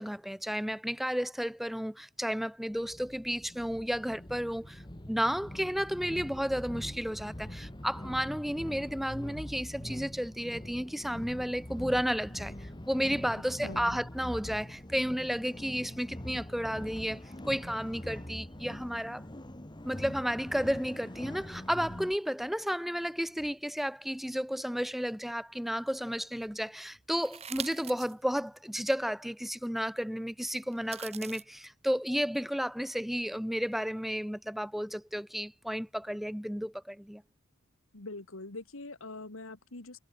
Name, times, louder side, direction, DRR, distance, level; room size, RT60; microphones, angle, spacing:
voice 1, 0.0-19.2 19.8-37.2, equal, ahead, 0.6 m, -32 dB
sound 1, 2.7-22.2, left 1 dB, 20° left, 1.9 m, -43 dB
voice 2, 13.6-14.0 37.9-40.0, left 2 dB, 75° left, 2.2 m, -43 dB
sound 2, 27.2-28.1 28.7-28.8 30.7-31.4, right 8 dB, 30° right, 1.3 m, -41 dB
head